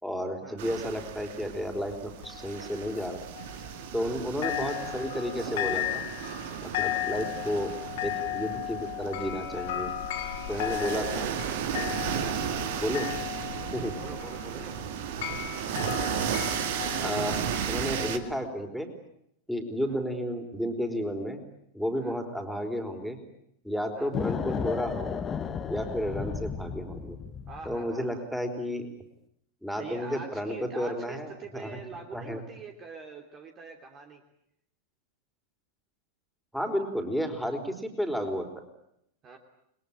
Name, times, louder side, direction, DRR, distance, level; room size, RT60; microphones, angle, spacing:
voice 1, 0.0-3.2 3.9-6.0 6.6-7.8 8.0-9.9 10.5-11.3 11.7-11.8 12.8-13.1 13.7-14.0 17.0-17.4 17.7-18.9 19.5-21.4 21.7-23.2 23.6-25.3 25.7-27.2 27.6-28.9 29.6-31.8 32.1-32.4 36.5-38.6, equal, ahead, 5 dB, 4.6 m, -32 dB
sound 1, 0.6-18.2, right 9 dB, 50° right, 2.1 m, -35 dB
sound 2, 2.2-4.2 4.4-18.3, left 14 dB, 55° left, 2.9 m, -36 dB
voice 2, 3.9-4.3 10.5-11.0 12.1-12.4 14.0-14.7 19.9-20.0 22.0-22.2 23.9-24.1 27.5-28.3 29.7-34.2 39.2-39.4, right 4 dB, 30° right, 4 dB, 3.1 m, -44 dB
sound 3, 24.1-27.8, left 6 dB, 20° left, 1.7 m, -33 dB
29.5 x 21.5 x 8.9 m, 0.76 s
figure-of-eight pair, 90°, 0 cm